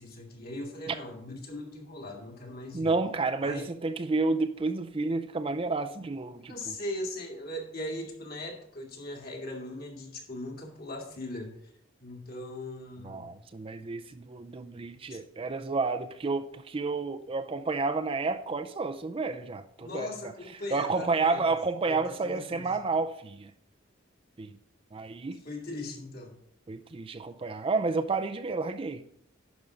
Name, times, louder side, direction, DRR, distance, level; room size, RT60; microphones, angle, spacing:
voice 1, 0.0-2.9 3.4-3.7 6.5-11.5 12.0-13.3 15.1-15.2 19.8-21.5 21.9-22.7 25.3-26.4, left 1 dB, 50° left, 2.1 m, -39 dB
voice 2, 2.7-6.7 13.0-20.1 20.7-23.5 24.4-24.6 24.9-25.4 26.7-29.0, right 3 dB, 25° right, 0.4 m, -30 dB
11.0 x 5.3 x 5.0 m
head